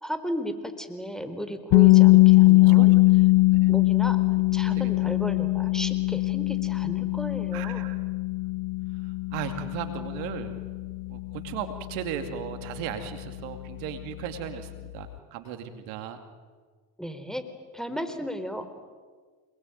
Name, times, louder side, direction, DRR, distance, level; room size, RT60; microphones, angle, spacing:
voice 1, 0.0-3.0 3.7-7.9 17.0-17.4 17.7-18.7, equal, ahead, 9 dB, 4.2 m, -35 dB
sound 1, 1.7-13.6, left 22 dB, 80° left, 0.8 m, -21 dB
voice 2, 2.6-3.0 3.5-3.8 4.6-5.2 7.5-8.0 9.0-10.5 11.1-16.2, right 9 dB, 80° right, 7 dB, 2.6 m, -36 dB
27.5 x 21.0 x 9.3 m, 1.5 s
hypercardioid pair, 65°, 48 cm